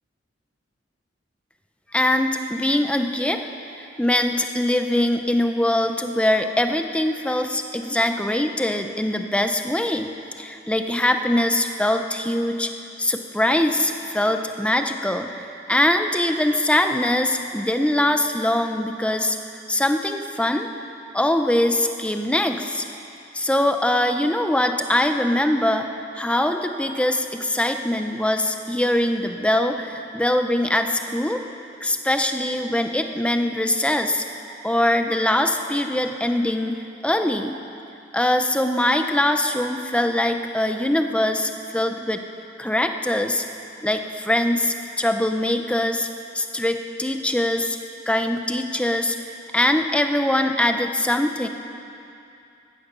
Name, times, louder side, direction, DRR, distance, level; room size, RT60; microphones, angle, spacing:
voice 1, 1.9-3.4 3.8-10.1 10.4-12.7 13.0-19.4 19.7-20.7 21.1-22.8 23.3-25.9 26.2-31.4 31.8-34.2 34.6-37.6 38.1-42.2 42.6-43.4 43.8-46.1 46.3-47.8 48.1-49.2 49.5-51.5, left 1 dB, 5° left, 6 dB, 0.7 m, -22 dB
15.5 x 13.0 x 6.1 m, 2.7 s
head